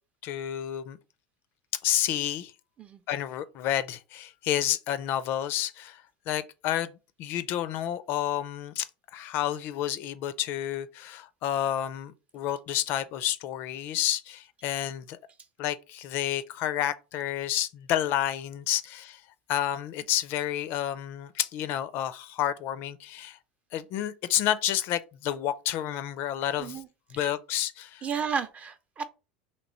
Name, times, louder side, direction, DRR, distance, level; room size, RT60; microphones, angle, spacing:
voice 1, 0.2-1.0 1.8-2.5 3.1-6.9 7.2-8.9 9.1-15.2 15.6-19.2 19.5-23.4 23.7-26.8 27.1-28.1, left 12 dB, 55° left, 0.4 m, -30 dB
voice 2, 28.0-29.0, right 6 dB, 30° right, 0.6 m, -32 dB
3.0 x 3.0 x 4.0 m
hypercardioid pair, 85°, 4 cm